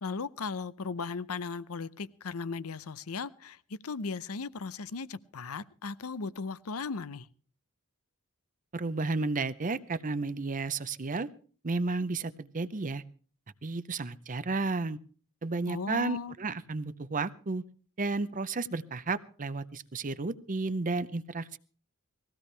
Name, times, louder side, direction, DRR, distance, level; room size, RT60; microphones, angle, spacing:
voice 1, 0.0-7.3 15.7-16.3, left 4 dB, 70° left, 0.7 m, -37 dB
voice 2, 8.7-11.3 11.6-13.0 13.6-15.0 15.4-17.6 18.0-21.6, right 3 dB, 35° right, 0.7 m, -32 dB
20.5 x 16.0 x 3.3 m
head